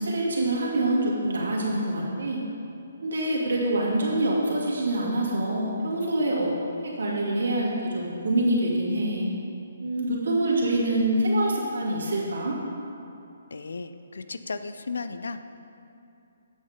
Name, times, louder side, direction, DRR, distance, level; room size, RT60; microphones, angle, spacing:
voice 1, 0.0-2.4 3.0-6.5 6.8-9.3 9.8-12.6, right 1 dB, 75° right, -4 dB, 2.3 m, -25 dB
voice 2, 13.5-15.4, left 4 dB, 80° left, 11 dB, 0.5 m, -35 dB
8.6 x 6.7 x 5.0 m, 2.7 s
hypercardioid pair, 155°, 0 cm